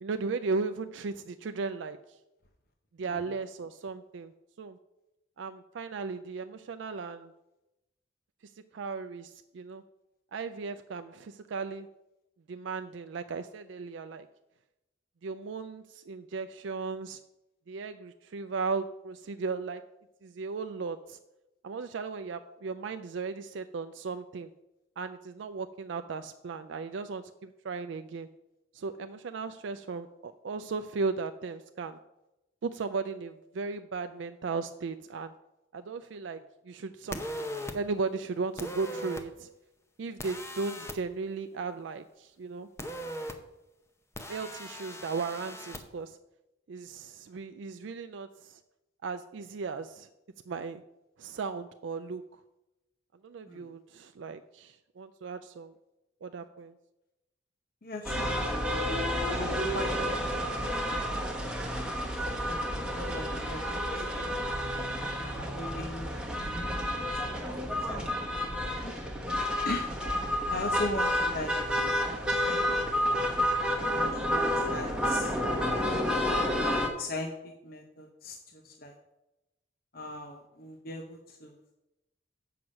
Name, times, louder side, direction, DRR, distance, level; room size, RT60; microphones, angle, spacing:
voice 1, 0.0-2.2 3.0-4.3 4.6-4.8 5.4-7.3 8.4-9.8 10.3-11.9 12.5-14.3 15.2-17.2 17.7-19.8 20.2-21.2 21.6-24.5 25.0-28.3 28.7-32.0 32.6-35.3 35.7-36.4 36.6-37.5 37.7-39.5 40.0-42.7 44.3-46.2 46.7-48.6 49.0-50.1 50.5-50.8 51.2-52.4 53.2-55.7 56.2-56.7, right 4 dB, 70° right, 8 dB, 0.4 m, -36 dB
sound 1, 37.1-37.7 38.6-39.2 40.2-41.0 42.8-43.3 44.2-45.8, equal, 15° left, 0.7 m, -39 dB
voice 2, 57.8-58.4 59.2-60.7 61.3-61.5 63.0-64.3 65.2-66.5 66.9-67.4 67.9-68.9 69.6-69.9 70.5-72.9 73.8-76.2 77.0-79.0 79.9-81.6, left 2 dB, 50° left, 3 dB, 0.8 m, -40 dB
sound 2, 58.0-76.9, equal, 5° right, 1.0 m, -30 dB
7.8 x 5.8 x 6.4 m, 0.94 s
head